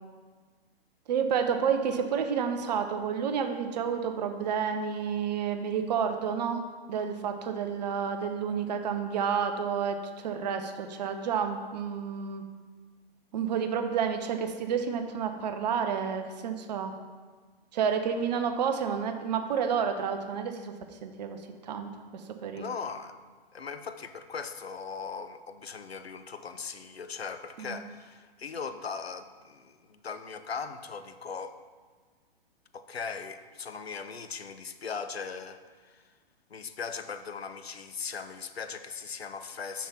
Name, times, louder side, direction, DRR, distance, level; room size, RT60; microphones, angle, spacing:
voice 1, 1.1-12.4 13.3-16.9 17.7-20.7 21.0-22.7 27.6-27.8, right 7 dB, 45° right, 7 dB, 0.8 m, -30 dB
voice 2, 22.5-23.2 23.5-31.6 32.7-36.0 36.5-39.9, left 5 dB, 85° left, 10 dB, 0.6 m, -39 dB
6.2 x 6.0 x 5.4 m, 1.5 s
figure-of-eight pair, 120°, 30 cm